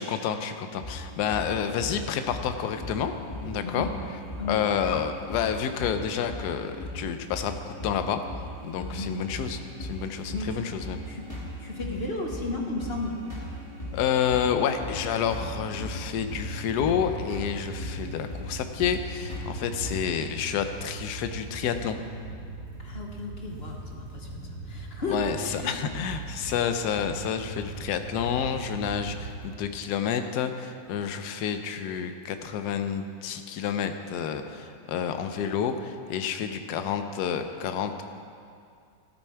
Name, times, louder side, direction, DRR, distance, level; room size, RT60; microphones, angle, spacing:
voice 1, 0.0-3.1 3.4-3.9 4.5-8.2 8.6-11.0 13.9-22.0 25.1-38.0, left 8 dB, 70° left, 8 dB, 1.2 m, -29 dB
sound 1, 0.8-20.2, equal, 20° left, 1.7 m, -39 dB
voice 2, 8.8-9.1 10.3-10.6 11.1-11.2 11.6-13.2 22.8-25.7, left 2 dB, 40° left, 1 dB, 1.1 m, -34 dB
sound 2, 15.1-29.5, right 2 dB, 45° right, 2.4 m, -40 dB
13.5 x 8.5 x 4.5 m, 2.3 s
omnidirectional pair, 1.9 m